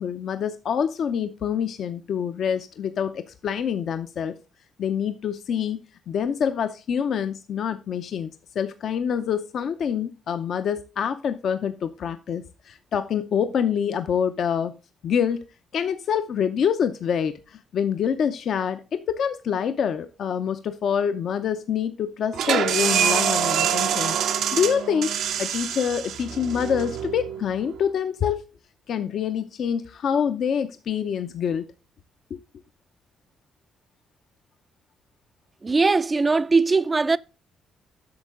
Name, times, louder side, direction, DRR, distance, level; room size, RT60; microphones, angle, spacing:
voice 1, 0.0-4.4 4.8-5.8 6.1-14.7 15.0-15.4 15.7-24.2 24.5-25.1 25.4-28.4 28.9-31.6 32.3-32.4, left 7 dB, 65° left, 0.6 m, -26 dB
sound 1, 22.3-27.8, right 9 dB, 85° right, 0.9 m, -25 dB
voice 2, 35.6-37.2, right 3 dB, 25° right, 0.4 m, -20 dB
8.7 x 6.3 x 3.7 m
cardioid pair, 90°, 0 cm